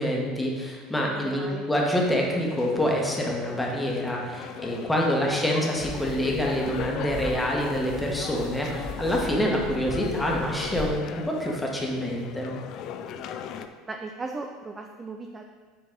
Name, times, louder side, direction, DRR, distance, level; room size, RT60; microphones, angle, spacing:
voice 1, 0.0-12.5, equal, 10° left, -1 dB, 1.5 m, -26 dB
voice 2, 1.0-1.6 5.3-5.4 13.9-15.4, right 3 dB, 25° right, 3 dB, 0.5 m, -37 dB
sound 1, 1.9-13.7, left 8 dB, 50° left, 0.4 m, -38 dB
sound 2, 5.8-10.8, left 1 dB, 70° left, 1.9 m, -37 dB
7.4 x 4.5 x 3.8 m, 1.5 s
figure-of-eight pair, 70°, 0 cm